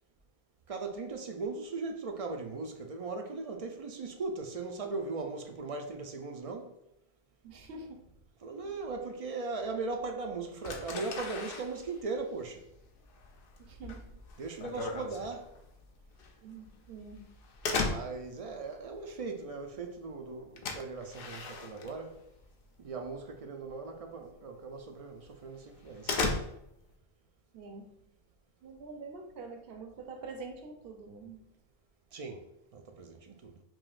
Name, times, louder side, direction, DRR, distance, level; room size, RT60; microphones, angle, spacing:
voice 1, 0.7-6.7 8.4-12.6 14.4-15.5 17.8-22.2 22.8-26.3 32.1-32.5 32.7-33.6, right 3 dB, 55° right, 0.4 m, -38 dB
voice 2, 7.4-8.1 8.6-8.7 13.6-14.1 16.4-17.3 27.5-27.9 28.6-31.5, right 3 dB, 75° right, 0.9 m, -46 dB
sound 1, 10.6-22.5 22.8-23.3 23.7-23.8 24.3-24.4 24.8-24.9 25.3-26.9, left 3 dB, 65° left, 0.7 m, -37 dB
5.4 x 2.8 x 2.4 m
omnidirectional pair, 1.0 m